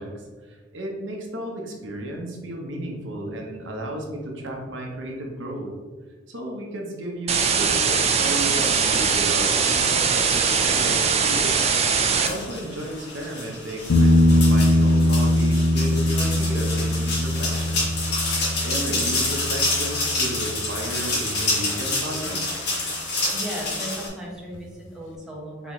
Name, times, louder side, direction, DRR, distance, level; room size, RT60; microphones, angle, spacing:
voice 1, 0.0-5.8 6.3-11.7 12.1-18.1 18.6-22.4, right 1 dB, 75° right, 1 dB, 0.8 m, -33 dB
sound 1, 7.3-12.3, right 5 dB, 35° right, 0.4 m, -21 dB
sound 2, 12.3-24.1, left 2 dB, 60° left, 1.4 m, -28 dB
sound 3, 13.9-21.5 24.5-24.6, left 1 dB, 80° left, 0.5 m, -22 dB
voice 2, 23.3-25.7, equal, 5° right, -4 dB, 1.0 m, -36 dB
4.2 x 4.0 x 3.0 m, 1.4 s
head